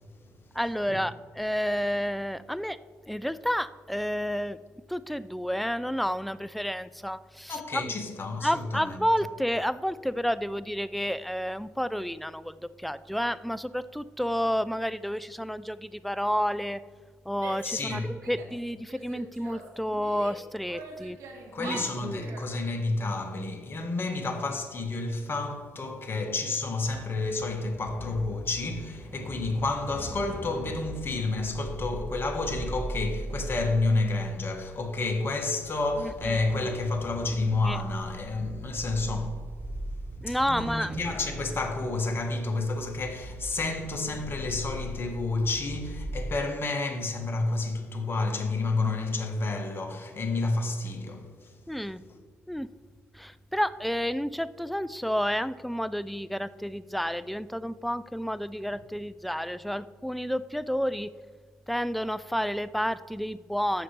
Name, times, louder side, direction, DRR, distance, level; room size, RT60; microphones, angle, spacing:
voice 1, 0.5-2.8 3.1-4.6 4.9-7.9 8.4-16.8 17.3-21.2 21.6-22.3 36.0-36.7 37.6-37.8 40.2-40.9 51.7-52.0 52.5-52.7 53.1-61.1 61.7-63.8, equal, ahead, 0.4 m, -30 dB
voice 2, 7.5-9.0 17.6-18.1 21.5-39.4 40.3-51.6 52.1-52.2, left 3 dB, 45° left, 1.4 m, -30 dB
Female speech woman speaking / Yell, 17.4-18.6 18.9-20.4 20.7-22.5, right 4 dB, 75° right, 1.7 m, -43 dB
sound 1, 26.8-46.4, right 1 dB, 15° right, 1.5 m, -40 dB
14.0 x 5.7 x 3.3 m
supercardioid pair, 50°, 6 cm